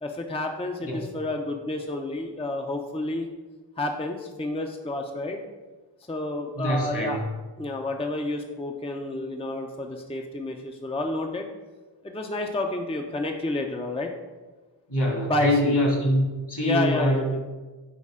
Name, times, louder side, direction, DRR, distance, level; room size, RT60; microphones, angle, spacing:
voice 1, 0.0-3.3 3.8-5.4 6.1-7.2 7.6-11.5 12.0-14.1 15.3-15.8 16.6-17.4, left 2 dB, 15° left, 3 dB, 0.5 m, -30 dB
voice 2, 0.9-1.2 6.5-7.2 14.9-17.3, left 1 dB, 60° left, -1 dB, 2.0 m, -24 dB
8.4 x 4.4 x 3.7 m, 1.3 s
wide cardioid pair, 55°, 45 cm